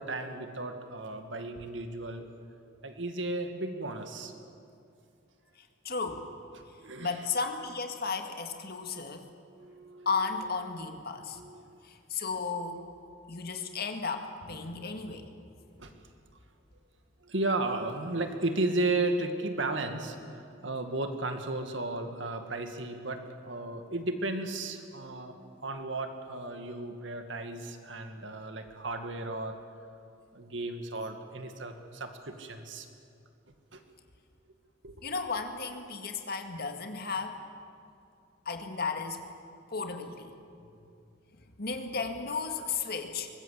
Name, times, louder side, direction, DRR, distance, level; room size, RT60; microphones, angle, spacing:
voice 1, 0.0-2.3 2.8-4.3 6.5-7.2 9.5-10.1 10.7-10.8 11.3-11.6 15.8-15.9 17.2-29.6 30.3-32.9 33.7-33.8 34.8-35.1, right 2 dB, 70° right, 6 dB, 2.1 m, -34 dB
voice 2, 5.6-6.3 7.0-9.3 10.1-11.4 11.8-12.8 13.3-15.3 35.0-37.4 38.5-39.2 39.7-40.3 41.6-43.3, left 4 dB, 55° left, 5 dB, 2.0 m, -34 dB
23.5 x 20.0 x 8.3 m, 2.5 s
head